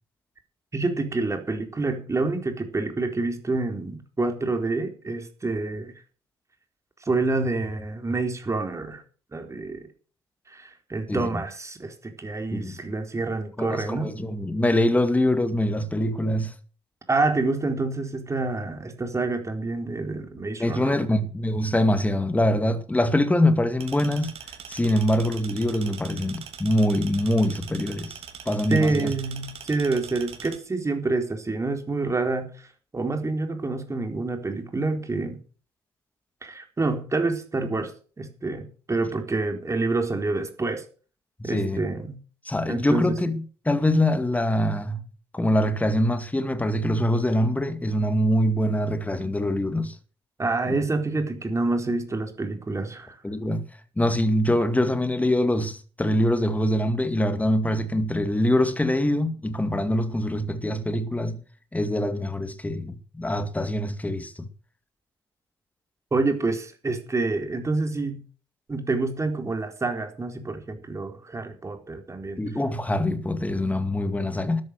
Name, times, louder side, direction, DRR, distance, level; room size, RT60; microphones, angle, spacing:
voice 1, 0.7-5.9 7.0-9.0 9.3-9.8 10.5-14.1 17.1-20.9 28.7-32.7 32.9-35.4 36.4-37.9 38.2-40.8 41.4-42.2 42.7-43.2 50.4-53.2 66.1-68.2 68.7-72.4, right 3 dB, 25° right, 4.2 m, -27 dB
voice 2, 11.1-11.4 12.5-12.8 13.6-16.5 20.6-24.3 24.7-28.2 28.5-29.1 41.4-41.8 42.5-45.0 45.3-50.0 53.2-53.6 54.0-61.4 61.7-64.5 72.4-74.6, left 1 dB, 10° left, 2.1 m, -24 dB
sound 1, 23.8-30.6, right 8 dB, 50° right, 2.9 m, -42 dB
13.0 x 10.5 x 6.5 m
figure-of-eight pair, 50°, 12 cm